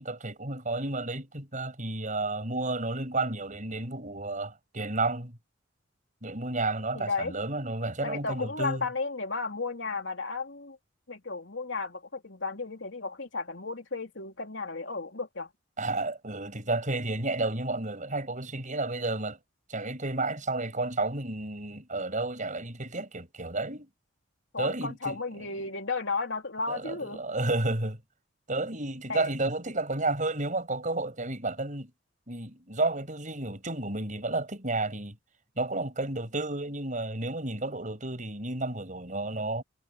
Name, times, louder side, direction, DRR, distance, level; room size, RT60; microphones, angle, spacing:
voice 1, 0.1-5.4 6.2-8.9 15.8-19.4 19.7-23.9 24.6-25.2 26.7-28.0 28.5-31.9 32.3-35.2 35.6-39.6, right 2 dB, 40° right, 7.6 m, -31 dB
voice 2, 6.9-7.3 8.0-10.8 11.1-15.5 24.5-27.2 29.1-29.3, left 4 dB, 65° left, 3.6 m, -34 dB
head